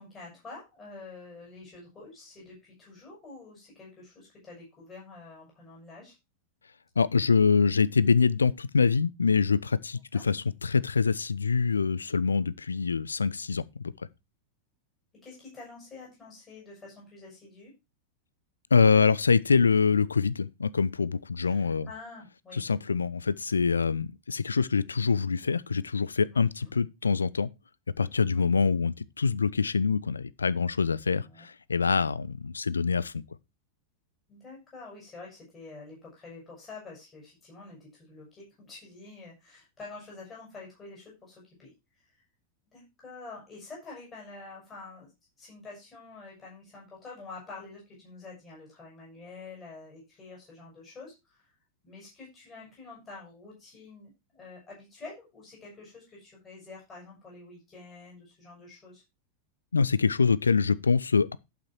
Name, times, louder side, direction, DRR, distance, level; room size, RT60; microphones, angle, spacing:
voice 1, 0.0-6.1 10.1-10.2 15.2-17.7 21.4-22.6 26.3-26.8 28.3-28.5 31.2-31.4 34.3-41.7 42.7-45.1 45.4-51.5 51.8-59.0, left 3 dB, 20° left, 5.9 m, -47 dB
voice 2, 7.0-13.9 18.7-21.9 22.5-27.5 28.0-33.2 59.7-61.4, left 5 dB, 75° left, 0.4 m, -25 dB
11.5 x 5.8 x 4.4 m
figure-of-eight pair, 90°, 0 cm